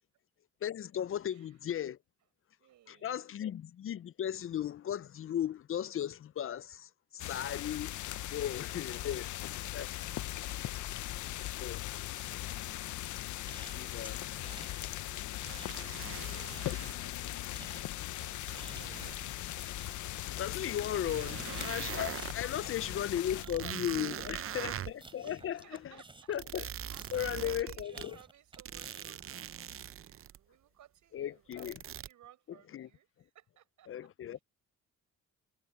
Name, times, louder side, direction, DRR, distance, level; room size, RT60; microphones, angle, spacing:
voice 1, 0.6-2.0 2.9-8.0 8.3-9.2 9.7-9.9 11.6-11.8 13.7-14.2 20.3-25.6 26.3-26.6 27.1-28.2 31.1-31.8 32.7-32.9 33.9-34.4, left 10 dB, 45° left, 0.5 m, -36 dB
voice 2, 1.3-1.6 2.6-3.5 8.1-9.8 10.6-11.4 12.7-19.3 22.4-23.0 23.3-24.7 25.2-34.4, right 12 dB, 75° right, 6.6 m, -60 dB
sound 1, 7.2-23.5, left 14 dB, 75° left, 0.8 m, -39 dB
sound 2, 13.2-14.8 15.1-16.3 16.6-26.5 26.9-29.3, right 2 dB, 15° right, 3.3 m, -54 dB
sound 3, 15.4-17.0 18.2-19.3 20.0-20.1 20.6-20.7 21.0-22.4 22.8-22.9 23.2-25.1 26.4-28.1 28.5-30.4 31.5-32.1, right 10 dB, 45° right, 0.7 m, -42 dB
cardioid pair, 90°, 30 cm